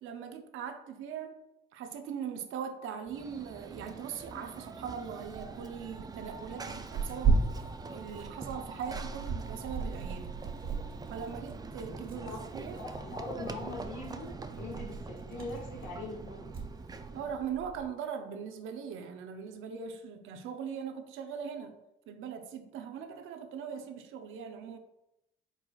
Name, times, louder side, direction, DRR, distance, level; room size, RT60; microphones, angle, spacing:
voice 1, 0.0-1.4 1.7-10.4 11.1-12.8 17.1-21.8 22.1-24.8, right 7 dB, 85° right, 0.6 m, -40 dB
Run / Train, 3.1-17.5, right 3 dB, 20° right, 0.3 m, -44 dB
Tearing, 5.2-17.9, right 4 dB, 50° right, 1.4 m, -37 dB
voice 2, 12.8-16.5, left 3 dB, 80° left, 1.5 m, -42 dB
4.7 x 4.1 x 2.3 m
cardioid pair, 90°, 20 cm